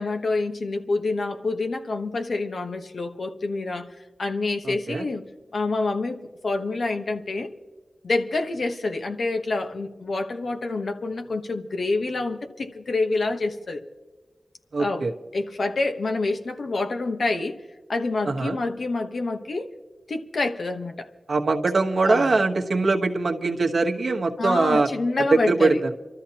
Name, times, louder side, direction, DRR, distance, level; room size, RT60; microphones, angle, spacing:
voice 1, 0.0-3.9 4.2-5.2 5.5-7.5 8.0-13.8 14.8-15.1 15.3-17.6 17.9-19.7 20.1-21.1 22.1-22.4 24.4-25.8, left 3 dB, 70° left, 1.1 m, -27 dB
voice 2, 4.6-5.0 14.7-15.1 18.3-18.6 21.3-24.9 25.2-25.7, right 3 dB, 70° right, 1.1 m, -22 dB
29.0 x 13.0 x 2.9 m
wide cardioid pair, 60°, 0 cm